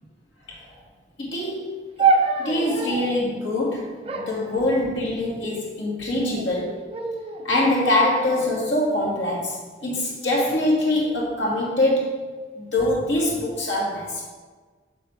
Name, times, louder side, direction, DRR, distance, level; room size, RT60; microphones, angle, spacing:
voice 1, 1.2-1.7 2.0-2.1 2.4-6.9 7.4-12.2 12.5-14.2, left 1 dB, 85° left, -3 dB, 2.5 m, -24 dB
sound 1, 2.0-3.2 4.0-5.3 6.0-6.5 6.9-7.5 8.1-9.4 10.2-10.7, right 4 dB, 35° right, 0.8 m, -27 dB
7.5 x 6.8 x 4.6 m, 1.4 s
head